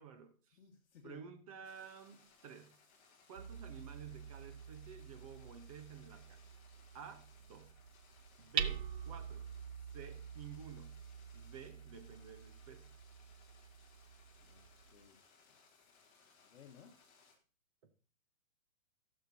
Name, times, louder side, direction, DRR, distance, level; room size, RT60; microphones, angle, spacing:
voice 1, 0.0-0.6 1.0-2.8 3.3-6.4 6.9-7.7 8.4-9.4 9.9-11.0 11.3-12.9, right 7 dB, 25° right, 0.9 m, -52 dB
voice 2, 0.5-1.2 14.4-15.2 16.4-17.0, left 7 dB, 55° left, 1.4 m, -59 dB
sound 1, 1.6-17.3, left 4 dB, 20° left, 1.7 m, -67 dB
Hammer, 3.4-15.1, right 8 dB, 55° right, 0.7 m, -46 dB
16.5 x 6.6 x 2.8 m
hypercardioid pair, 165°, 41 cm